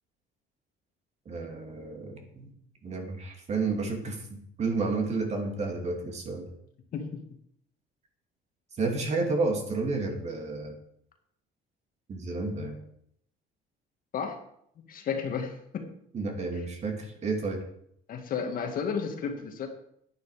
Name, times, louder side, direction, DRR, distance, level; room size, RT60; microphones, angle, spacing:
voice 1, 1.3-2.5 2.8-6.5 8.8-10.7 12.1-12.8 16.1-17.6, right 3 dB, 35° right, 3 dB, 2.4 m, -31 dB
voice 2, 14.9-15.9 18.1-19.7, left 6 dB, 50° left, 5 dB, 1.8 m, -32 dB
10.0 x 9.6 x 4.9 m, 0.70 s
cardioid pair, 145°, 19 cm